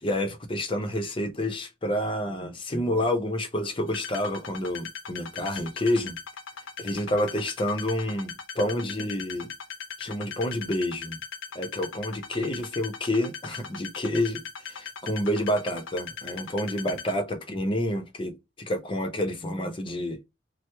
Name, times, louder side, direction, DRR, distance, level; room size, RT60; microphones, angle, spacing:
voice 1, 0.0-6.2 6.8-9.5 10.0-11.2 11.5-20.2, left 1 dB, 25° left, 0.6 m, -29 dB
sound 1, 3.9-17.2, left 6 dB, 75° left, 0.7 m, -39 dB
2.9 x 2.0 x 3.2 m
head